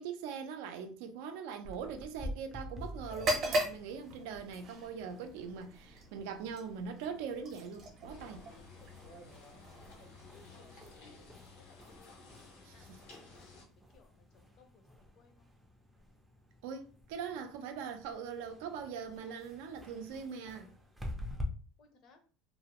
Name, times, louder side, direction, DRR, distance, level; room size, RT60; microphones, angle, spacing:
voice 1, 0.0-8.5 10.7-10.8 12.6-13.0 16.6-20.7, right 6 dB, 80° right, 0.4 m, -42 dB
sound 1, 1.6-21.5, left 1 dB, 5° right, 0.4 m, -49 dB
sound 2, 3.1-10.9, right 1 dB, 40° right, 0.7 m, -39 dB
sound 3, 8.1-13.6, left 3 dB, 80° left, 0.8 m, -55 dB
voice 2, 8.8-9.3 10.5-12.3 12.7-13.7 13.9-15.5 21.8-22.2, left 4 dB, 45° left, 0.6 m, -65 dB
2.5 x 2.0 x 2.9 m
cardioid pair, 140°, 0 cm